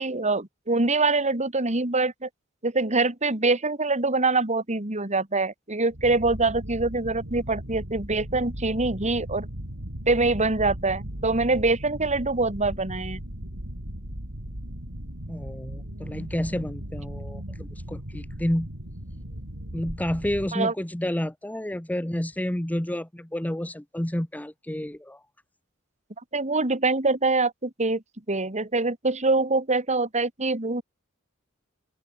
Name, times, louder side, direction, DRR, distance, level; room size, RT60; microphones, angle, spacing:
voice 1, 0.0-2.3 2.6-9.5 10.1-13.2 20.5-20.7 26.3-28.0 28.3-30.8, right 3 dB, 35° right, 2.8 m, -24 dB
sound 1, 5.9-20.5, equal, 75° right, 5.7 m, -37 dB
voice 2, 15.3-18.7 19.7-25.2, left 1 dB, 10° left, 0.9 m, -30 dB
open air
head